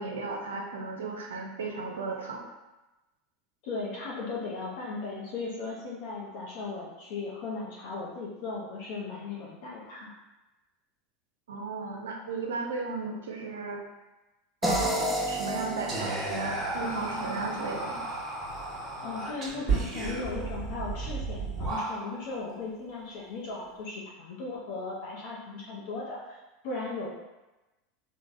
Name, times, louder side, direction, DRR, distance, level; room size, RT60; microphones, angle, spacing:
voice 1, 0.0-2.5 11.5-13.8 14.6-18.1, right 3 dB, 85° right, 1 dB, 0.4 m, -35 dB
voice 2, 3.6-10.1 19.0-26.4 26.6-27.1, left 3 dB, 65° left, -4 dB, 0.5 m, -37 dB
sound 1, 14.6-17.7, right 1 dB, 5° right, 0.5 m, -32 dB
Whispering, 15.9-22.3, right 3 dB, 35° right, 1.0 m, -33 dB
3.2 x 2.1 x 2.5 m, 1.0 s
hypercardioid pair, 90°, 0 cm